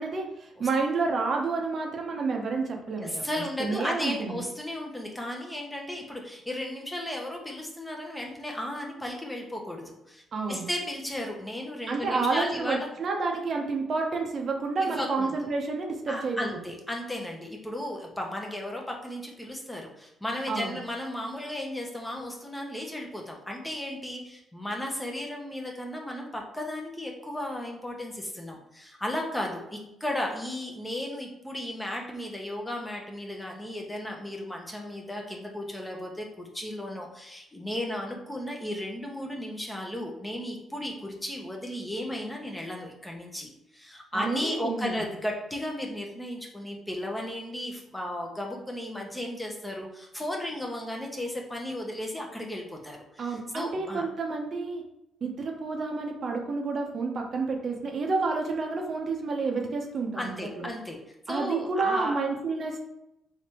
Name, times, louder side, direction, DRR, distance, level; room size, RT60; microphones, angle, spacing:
voice 1, 0.0-3.2 3.6-4.3 10.3-10.7 11.9-16.4 20.5-20.8 44.1-45.0 53.2-54.8 55.2-60.7 61.3-62.8, right 4 dB, 50° right, 1 dB, 0.7 m, -29 dB
voice 2, 3.0-10.2 10.5-12.9 14.8-15.3 16.1-54.0 60.2-61.0 61.3-62.2, left 1 dB, 10° left, 0 dB, 0.7 m, -35 dB
3.3 x 3.2 x 2.9 m, 0.84 s
cardioid pair, 90°, 0 cm